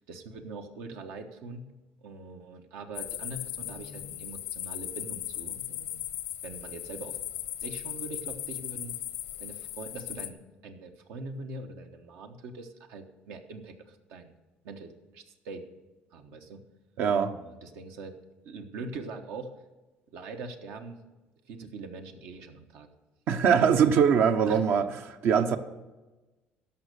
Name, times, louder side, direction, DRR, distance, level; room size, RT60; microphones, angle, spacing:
voice 1, 0.0-1.7 2.0-6.0 6.4-7.2 7.6-9.0 9.4-10.4 10.6-14.3 14.6-15.6 16.1-16.6 17.2-18.2 18.4-19.5 20.1-21.0 21.5-22.9 24.5-24.6, right 3 dB, 85° right, 5 dB, 1.1 m, -42 dB
sound 1, 3.0-10.3, left 13 dB, 85° left, 0.8 m, -38 dB
voice 2, 17.0-17.3 23.3-25.6, right 7 dB, 65° right, 8 dB, 0.7 m, -22 dB
13.0 x 5.5 x 6.7 m, 1.1 s
cardioid pair, 115°, 4 cm